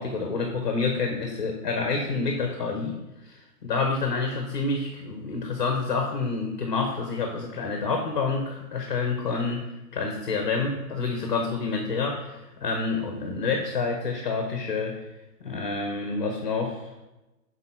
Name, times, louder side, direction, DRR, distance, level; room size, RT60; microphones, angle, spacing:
voice 1, 0.0-15.0 15.4-16.9, left 4 dB, 30° left, 3 dB, 0.7 m, -28 dB
6.8 x 4.2 x 5.7 m, 1.0 s
hypercardioid pair, 170°, 48 cm